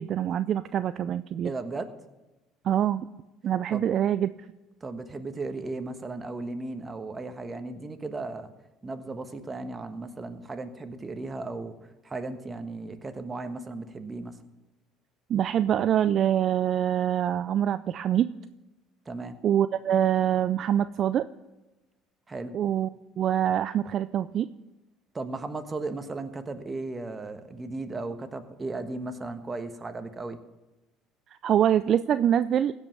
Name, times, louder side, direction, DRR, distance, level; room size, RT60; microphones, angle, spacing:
voice 1, 0.0-1.5 2.6-3.1 3.4-4.3 15.3-18.3 19.4-21.2 22.5-22.9 23.2-24.5 31.4-32.7, right 10 dB, 55° right, 13 dB, 0.3 m, -24 dB
voice 2, 1.4-1.9 3.7-3.9 4.8-8.5 8.8-11.7 12.0-14.4 19.0-19.4 22.3-22.6 25.1-30.4, right 3 dB, 25° right, 8 dB, 1.3 m, -36 dB
16.0 x 5.4 x 7.3 m, 1.0 s
hypercardioid pair, 70°, 0 cm